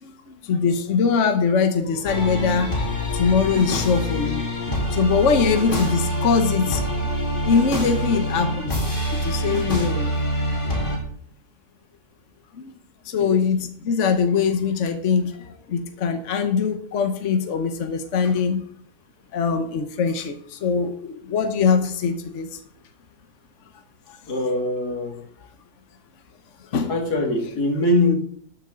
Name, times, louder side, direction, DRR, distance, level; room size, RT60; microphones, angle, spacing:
voice 1, 0.0-4.4 4.9-6.8 7.4-8.8 9.1-10.2 12.6-12.7 13.0-18.7 19.3-22.6 24.1-24.2 26.7-26.9, left 5 dB, 55° left, 7 dB, 1.3 m, -22 dB
sound 1, 2.0-11.0, equal, 35° left, 2.8 m, -25 dB
voice 2, 24.3-25.2 26.9-28.2, left 1 dB, 90° left, 2 dB, 2.8 m, -22 dB
13.0 x 9.5 x 3.8 m, 0.63 s
omnidirectional pair, 1.6 m